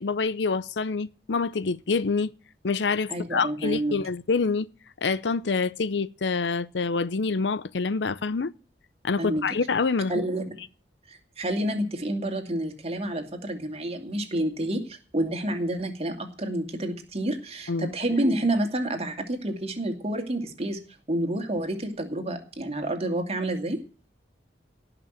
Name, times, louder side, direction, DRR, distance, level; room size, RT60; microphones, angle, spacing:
voice 1, 0.0-2.3 2.6-4.7 5.0-8.5 9.0-10.1 17.7-17.9, left 4 dB, 75° left, 0.6 m, -26 dB
voice 2, 3.1-4.0 9.2-9.4 10.1-10.5 11.1-20.8 21.1-23.8, right 1 dB, 35° right, 2.5 m, -29 dB
18.0 x 6.0 x 9.2 m
head